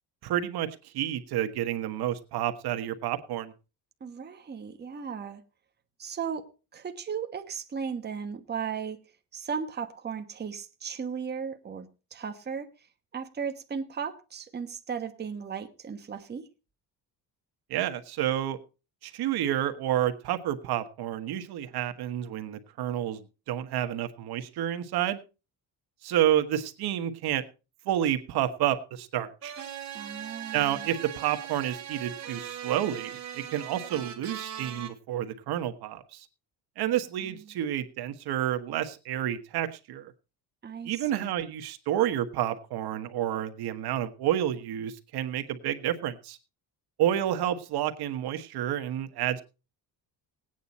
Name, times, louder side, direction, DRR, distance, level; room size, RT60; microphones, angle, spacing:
voice 1, 0.2-3.5 17.7-18.6 19.0-23.2 23.5-25.2 26.0-27.4 27.8-29.5 30.5-36.3 36.8-40.1 40.8-46.4 47.0-49.4, right 11 dB, 75° right, 1.4 m, -29 dB
voice 2, 4.0-5.4 6.0-9.0 9.3-12.7 13.1-16.5 29.9-30.9 37.2-37.4 40.6-41.3, right 6 dB, 25° right, 1.3 m, -36 dB
sound 1, 29.4-34.9, right 10 dB, 45° right, 2.5 m, -40 dB
18.0 x 9.3 x 4.2 m
cardioid pair, 130°, 38 cm